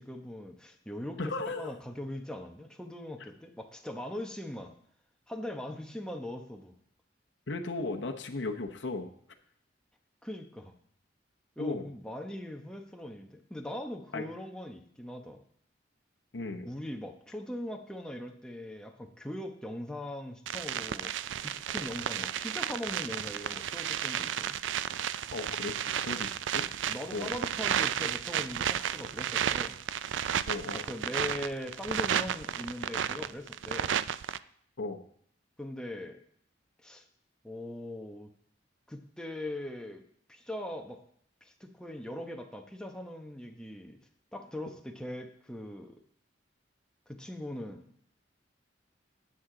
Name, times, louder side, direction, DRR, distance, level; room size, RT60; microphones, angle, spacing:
voice 1, 0.0-4.7 5.3-6.7 10.2-10.7 11.6-15.4 16.6-24.6 26.9-29.8 30.7-33.9 35.6-36.2 36.8-37.0 37.4-38.3 38.9-40.0 40.3-41.0 41.4-44.0 44.3-46.0 47.1-47.8, left 1 dB, 5° left, 3 dB, 1.0 m, -40 dB
voice 2, 1.2-1.7 7.5-9.1 11.6-11.8 14.1-14.2 16.3-16.7 25.3-26.7 27.1-27.3 30.4-30.8 34.8-35.0, left 3 dB, 70° left, 4 dB, 0.9 m, -36 dB
sound 1, 20.5-34.4, right 9 dB, 80° right, 0.4 m, -33 dB
12.0 x 8.5 x 3.9 m, 0.65 s
head